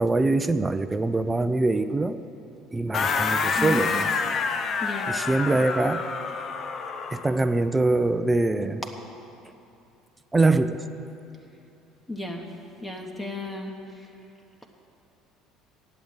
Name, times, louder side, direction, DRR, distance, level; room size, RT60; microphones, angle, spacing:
voice 1, 0.0-2.2 2.7-4.1 5.1-6.0 7.1-8.8 10.3-10.8, right 2 dB, 15° right, 10 dB, 0.5 m, -23 dB
sound 1, 2.9-7.3, left 5 dB, 45° left, 0.6 m, -27 dB
voice 2, 4.8-5.1 12.1-12.4 12.8-13.7, left 2 dB, 15° left, 1 dB, 1.1 m, -33 dB
8.1 x 7.9 x 8.8 m, 2.7 s
hypercardioid pair, 75°, 0 cm